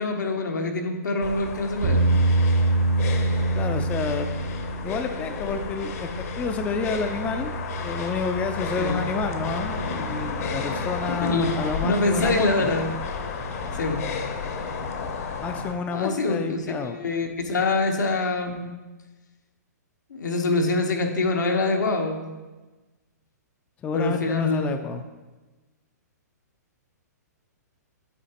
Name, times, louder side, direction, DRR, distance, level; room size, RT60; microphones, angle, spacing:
voice 1, 0.0-2.2 8.8-9.0 11.2-11.5 11.8-12.9 13.7-14.0 15.9-18.8 20.1-22.2 23.9-24.7, left 3 dB, 85° left, 3 dB, 0.9 m, -25 dB
sound 1, 1.2-15.7, left 5 dB, 55° left, 0.8 m, -32 dB
sound 2, 1.8-14.3, right 2 dB, 60° right, 0.8 m, -28 dB
voice 2, 3.5-4.3 4.8-7.5 7.8-12.7 15.4-17.0 23.8-25.0, left 4 dB, 15° left, 8 dB, 0.3 m, -29 dB
8.2 x 4.8 x 2.9 m, 1.2 s
hypercardioid pair, 130°, 9 cm